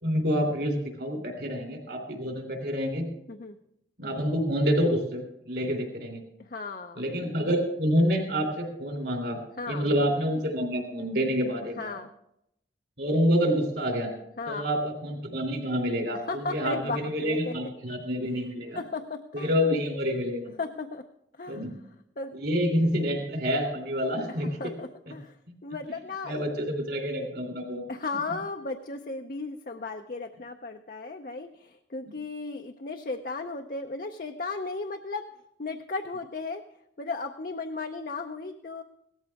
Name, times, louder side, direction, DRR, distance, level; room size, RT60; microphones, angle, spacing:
voice 1, 0.0-3.1 4.0-6.2 7.0-9.4 9.7-11.9 13.0-14.1 14.5-18.8 19.3-20.5 21.5-21.7 22.3-24.6 25.1-25.2 26.3-27.8, equal, 60° right, 3 dB, 3.3 m, -27 dB
voice 2, 6.4-7.0 9.6-9.9 11.8-12.1 14.4-14.7 16.1-17.5 18.8-19.5 20.6-21.0 21.3-21.6 22.2-22.4 24.3-25.4 25.6-26.4 27.9-35.2 35.6-36.6 37.0-38.8, left 3 dB, 50° left, 4 dB, 0.6 m, -35 dB
17.0 x 13.5 x 3.5 m, 0.77 s
head